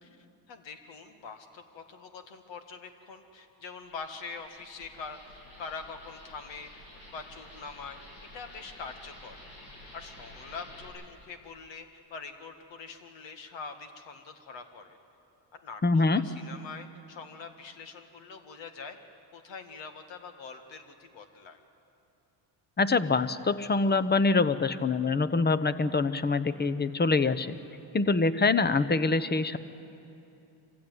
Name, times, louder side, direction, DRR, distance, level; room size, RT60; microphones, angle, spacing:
voice 1, 0.0-6.7 7.1-9.4 9.9-15.0 15.5-19.0 19.3-21.6, left 5 dB, 65° left, 6 dB, 2.0 m, -44 dB
sound 1, 3.8-10.9, left 1 dB, 90° left, 7.2 m, -50 dB
voice 2, 15.8-16.2 22.8-27.5 27.9-29.6, left 3 dB, 20° left, 13 dB, 0.9 m, -25 dB
25.0 x 15.5 x 9.4 m, 2.8 s
supercardioid pair, 80°, 48 cm